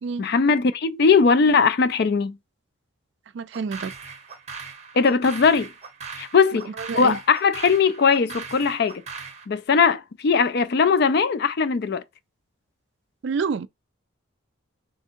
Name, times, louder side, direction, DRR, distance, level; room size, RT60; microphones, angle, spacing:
voice 1, 0.2-2.4 4.9-5.7 6.1-9.0 9.5-12.0, left 5 dB, 50° left, 0.4 m, -20 dB
voice 2, 3.3-3.9 6.9-7.2 13.2-13.7, right 5 dB, 60° right, 0.3 m, -27 dB
sound 1, 3.5-9.5, right 5 dB, 35° right, 0.8 m, -39 dB
3.4 x 3.4 x 4.4 m
head